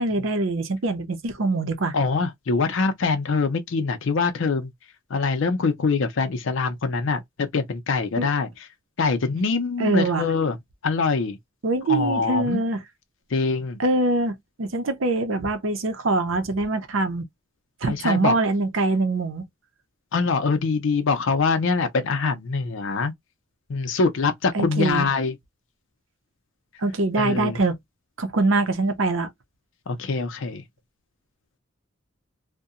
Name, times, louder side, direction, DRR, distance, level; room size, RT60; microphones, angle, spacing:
voice 1, 0.0-1.9 8.2-8.3 9.8-10.3 11.6-12.8 13.8-17.3 17.8-19.5 24.5-25.1 26.8-27.8 28.2-29.3, right 2 dB, 80° right, 0.6 m, -23 dB
voice 2, 1.9-4.7 5.1-7.2 7.5-8.5 9.0-10.6 10.8-11.4 11.9-12.6 13.3-13.8 17.8-18.3 20.1-23.1 23.7-25.3 27.2-27.6 29.9-30.6, left 4 dB, 70° left, 0.5 m, -24 dB
2.7 x 2.1 x 2.4 m
head